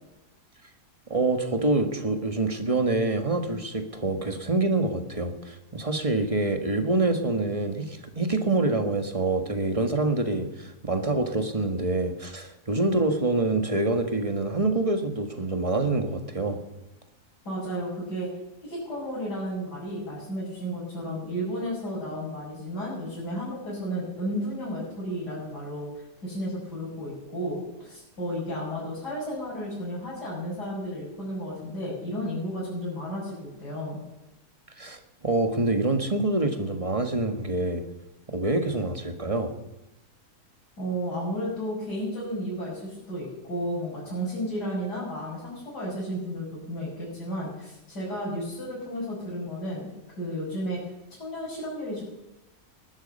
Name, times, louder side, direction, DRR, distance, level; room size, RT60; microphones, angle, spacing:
voice 1, 1.1-16.6 34.8-37.8 38.3-39.5, right 2 dB, 20° right, 6 dB, 1.5 m, -26 dB
voice 2, 17.4-18.3 18.6-34.0 40.8-49.9 50.2-50.8 51.2-52.0, equal, 85° left, -8 dB, 6.6 m, -33 dB
19.5 x 12.0 x 5.5 m, 0.95 s
omnidirectional pair, 1.7 m